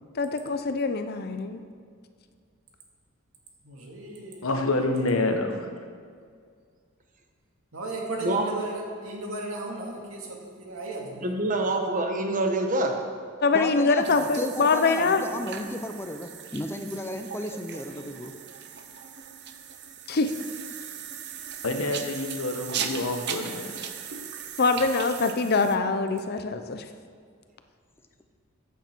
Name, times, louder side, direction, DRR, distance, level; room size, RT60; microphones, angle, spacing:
voice 1, 0.1-1.6 13.4-15.3 20.1-20.3 24.6-26.8, left 4 dB, 50° left, 8 dB, 0.7 m, -24 dB
voice 2, 3.6-4.5 4.8-5.0 7.7-11.3, right 2 dB, 85° right, 0 dB, 2.2 m, -35 dB
voice 3, 4.4-5.8 21.6-23.9, left 2 dB, 90° left, 5 dB, 1.2 m, -28 dB
voice 4, 11.2-13.0, right 2 dB, 40° right, 3 dB, 1.3 m, -26 dB
voice 5, 13.5-18.3, left 1 dB, 10° left, 6 dB, 0.7 m, -34 dB
sound 1, 14.0-25.8, right 8 dB, 55° right, 0.8 m, -38 dB
14.0 x 8.5 x 4.5 m, 2.1 s
head